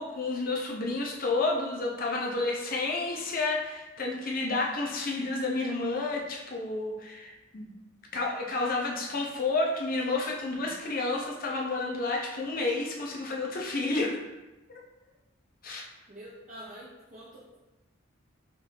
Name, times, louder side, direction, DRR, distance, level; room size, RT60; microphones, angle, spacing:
voice 1, 0.0-7.8 8.1-14.2 15.6-15.9, left 3 dB, 45° left, -1 dB, 0.6 m, -30 dB
voice 2, 16.1-17.6, right 1 dB, 40° right, -7 dB, 0.6 m, -46 dB
4.9 x 2.5 x 3.2 m, 1.1 s
head